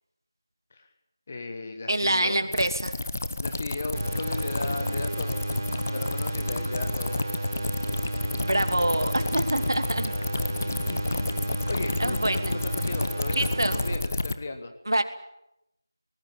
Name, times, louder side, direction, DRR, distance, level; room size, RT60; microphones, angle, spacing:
voice 1, 1.3-2.5 3.4-5.5 5.9-7.2 10.0-10.1 10.4-14.7, left 3 dB, 20° left, 6 dB, 1.4 m, -36 dB
voice 2, 1.9-2.9 8.4-10.1 12.0-12.6 12.9-13.0 13.3-13.8 14.9-15.0, right 1 dB, 65° right, 8 dB, 2.8 m, -26 dB
sound 1, 2.5-14.3, left 2 dB, 35° left, 1.2 m, -31 dB
sound 2, 3.9-13.9, right 1 dB, 30° right, 4.5 m, -32 dB
24.5 x 19.5 x 8.9 m, 0.85 s
figure-of-eight pair, 175°, 2 cm